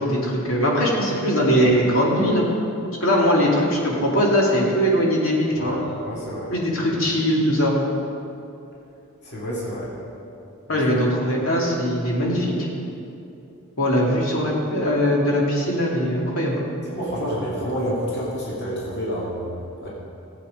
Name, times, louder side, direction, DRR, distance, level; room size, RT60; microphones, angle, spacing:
voice 1, 0.0-2.5 3.0-5.8 6.5-7.7 10.7-12.7 13.8-16.6, equal, 75° left, -3 dB, 2.6 m, -21 dB
voice 2, 6.0-6.5 9.2-9.9 10.7-10.8 16.9-19.9, equal, 55° left, -6 dB, 2.6 m, -28 dB
15.5 x 8.3 x 5.1 m, 2.7 s
head